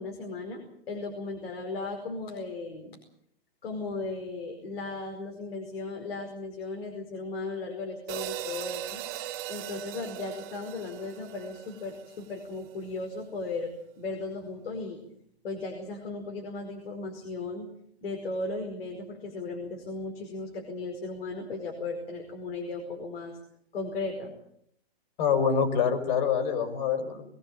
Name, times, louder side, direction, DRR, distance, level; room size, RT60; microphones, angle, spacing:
voice 1, 0.0-3.0 3.6-9.0 9.5-15.0 15.4-17.7 18.0-23.4 23.7-24.3, left 3 dB, 75° left, 2 dB, 5.0 m, -36 dB
sound 1, 8.1-12.5, right 13 dB, 35° right, 1.9 m, -39 dB
voice 2, 25.2-27.2, left 7 dB, 50° left, 8 dB, 5.3 m, -25 dB
22.5 x 16.0 x 8.8 m, 0.71 s
hypercardioid pair, 125°, 30 cm